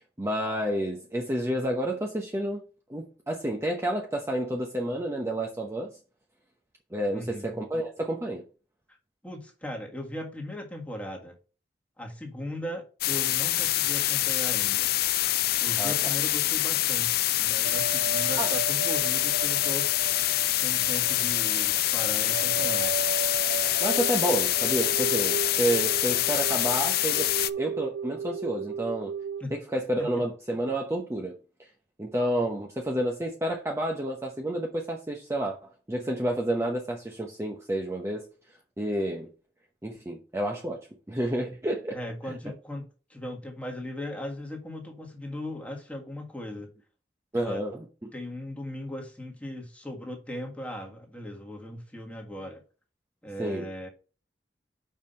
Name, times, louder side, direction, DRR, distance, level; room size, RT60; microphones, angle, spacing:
voice 1, 0.2-2.6 2.9-5.9 6.9-8.4 15.8-16.2 18.4-18.5 23.8-27.3 27.6-29.1 29.5-31.4 32.0-38.3 38.8-39.3 39.8-42.0 42.3-42.4 47.3-48.1 53.4-53.7, right 1 dB, 15° right, 0.8 m, -30 dB
voice 2, 7.1-7.6 8.9-9.0 9.2-11.4 12.0-14.9 15.6-19.9 20.6-23.0 29.4-29.5 30.0-30.1 41.9-46.7 47.3-47.6 48.1-52.6 53.2-53.9, left 1 dB, 10° left, 1.7 m, -38 dB
sound 1, 13.0-27.5, left 15 dB, 60° left, 0.4 m, -26 dB
sound 2, 17.6-29.4, right 6 dB, 90° right, 0.4 m, -36 dB
5.5 x 4.8 x 5.5 m
head